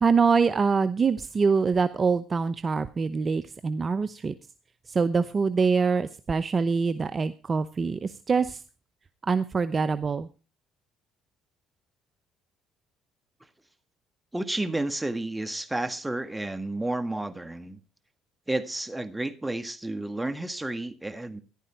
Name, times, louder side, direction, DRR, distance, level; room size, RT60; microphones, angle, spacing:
voice 1, 0.0-4.3 4.9-8.6 9.2-10.3, right 5 dB, 35° right, 0.7 m, -24 dB
voice 2, 14.3-17.8 18.5-21.4, right 2 dB, 10° right, 1.7 m, -31 dB
14.0 x 11.5 x 4.5 m
supercardioid pair, 70°, 0 cm